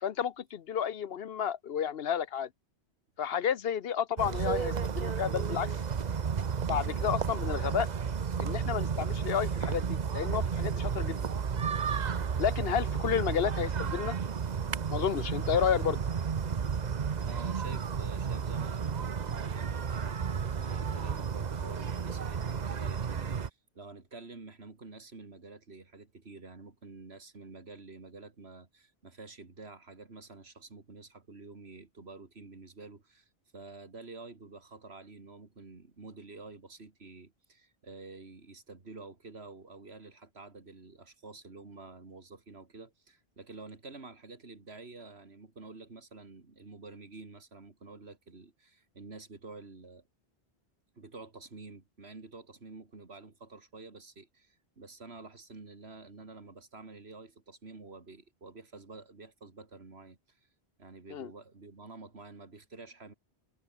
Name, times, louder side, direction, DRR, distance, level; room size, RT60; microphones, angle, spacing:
voice 1, 0.0-2.5 3.2-5.7 6.7-7.9 8.4-11.3 12.4-14.2 14.9-16.0 61.1-61.3, left 8 dB, 65° left, 0.9 m, -31 dB
sound 1, 4.2-23.5, right 6 dB, 45° right, 0.9 m, -32 dB
voice 2, 17.2-50.1 51.0-60.4 60.8-63.1, right 3 dB, 70° right, 2.9 m, -49 dB
omnidirectional pair, 1.1 m